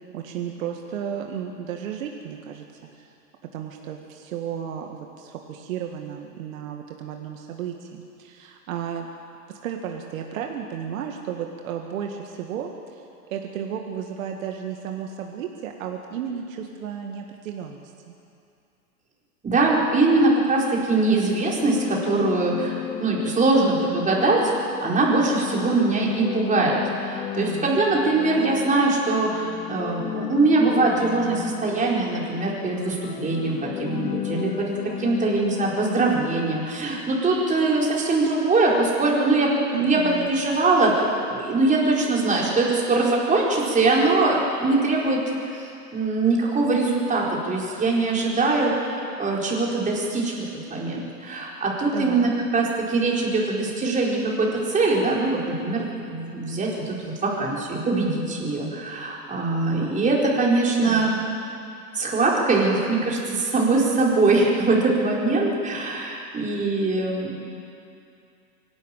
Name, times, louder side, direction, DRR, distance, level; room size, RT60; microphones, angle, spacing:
voice 1, 0.1-3.1 3.5-9.1 9.5-13.0 13.3-18.1 27.3-27.7 39.7-40.3 51.8-52.3 60.8-61.2, right 8 dB, 55° right, 3 dB, 2.0 m, -33 dB
voice 2, 19.4-24.4 24.8-40.0 40.3-45.5 45.9-61.2 61.9-67.4, right 3 dB, 15° right, -3 dB, 4.6 m, -22 dB
sound 1, 21.2-36.9, left 13 dB, 15° left, 0.4 m, -34 dB
24.5 x 12.0 x 9.2 m, 2.6 s
hypercardioid pair, 110°, 47 cm